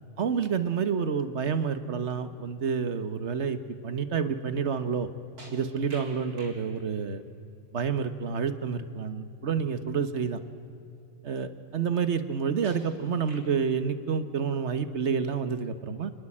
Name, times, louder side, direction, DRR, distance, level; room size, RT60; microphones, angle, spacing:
voice 1, 0.2-3.6 3.8-5.1 5.5-7.2 7.7-10.4 11.2-16.1, right 6 dB, 45° right, 12 dB, 1.4 m, -29 dB
sound 1, 5.4-6.6 9.5-9.6 10.3-10.4 12.6-13.7, right 2 dB, 60° right, 4.5 m, -49 dB
27.5 x 20.5 x 8.7 m, 2.8 s
omnidirectional pair, 1.8 m